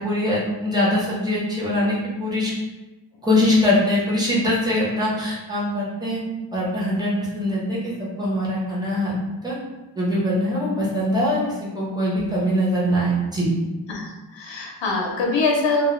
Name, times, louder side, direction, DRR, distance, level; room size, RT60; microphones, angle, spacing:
voice 1, 0.0-1.9 2.2-2.5 3.2-6.2 6.5-7.8 8.2-9.1 9.4-9.5 10.0-11.4 11.7-13.5, left 1 dB, 10° right, -7 dB, 0.9 m, -22 dB
voice 2, 13.9-15.9, left 3 dB, 80° left, 0 dB, 0.6 m, -23 dB
2.3 x 2.2 x 3.1 m, 1.1 s
wide cardioid pair, 105°, 43 cm